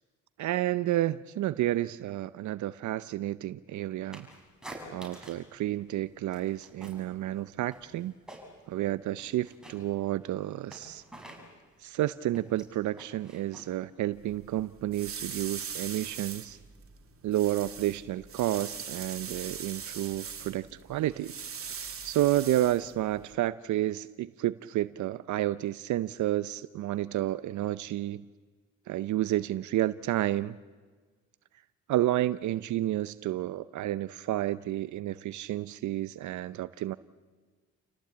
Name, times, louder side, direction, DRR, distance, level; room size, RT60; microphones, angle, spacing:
voice 1, 0.4-4.3 4.9-8.1 8.7-11.0 11.8-16.6 17.2-21.3 22.0-28.3 28.9-30.6 31.9-37.0, right 14 dB, 75° right, 15 dB, 0.7 m, -30 dB
sound 1, 4.1-5.5 5.8-7.1 7.4-8.7 9.0-14.4, right 1 dB, ahead, 6.1 m, -49 dB
sound 2, 14.1-23.3, right 7 dB, 50° right, 2.8 m, -42 dB
29.0 x 18.0 x 8.6 m, 1.4 s
cardioid pair, 90°, 30 cm